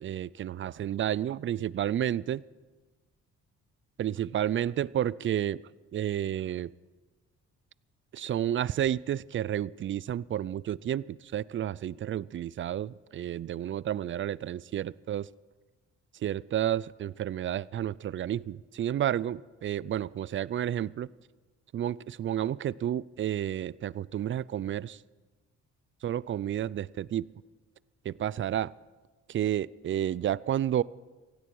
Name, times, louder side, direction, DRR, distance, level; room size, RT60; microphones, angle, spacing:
voice 1, 0.0-2.4 4.0-5.6 5.9-6.7 8.1-15.3 16.2-21.1 21.7-25.0 26.0-27.3 28.0-28.7 29.3-30.8, right 11 dB, 40° right, 22 dB, 0.4 m, -31 dB
17.0 x 16.0 x 4.7 m, 1.3 s
cardioid pair, 90°, 30 cm